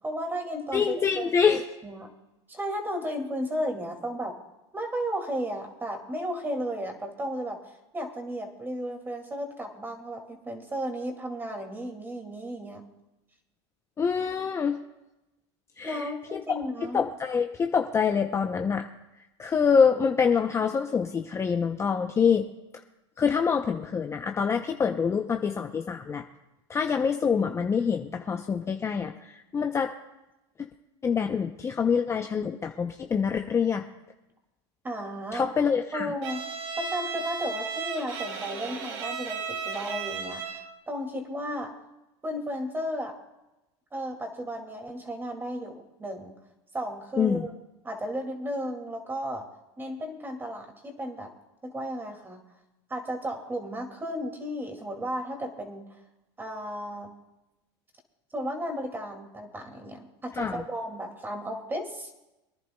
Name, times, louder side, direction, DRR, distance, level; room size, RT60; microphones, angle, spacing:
voice 1, 0.0-2.1 2.5-4.4 4.7-12.8 15.8-17.0 34.8-35.5 35.9-36.4 36.8-41.7 42.2-43.2 43.9-46.4 46.7-47.5 47.8-49.5 49.8-51.3 51.6-52.4 52.9-56.0 56.4-57.1 58.3-62.1, equal, 15° right, 3 dB, 2.2 m, -34 dB
voice 2, 0.7-1.6 14.0-14.8 15.8-16.0 16.9-18.8 19.4-22.4 23.2-26.2 26.7-29.9 30.6-30.7 31.0-33.8 35.3-36.1 47.2-47.4 60.4-60.6, left 6 dB, 20° left, 5 dB, 0.6 m, -25 dB
Bowed string instrument, 36.2-40.8, right 6 dB, 75° right, 2.2 m, -35 dB
25.5 x 11.0 x 2.2 m, 0.98 s
supercardioid pair, 115°, 15 cm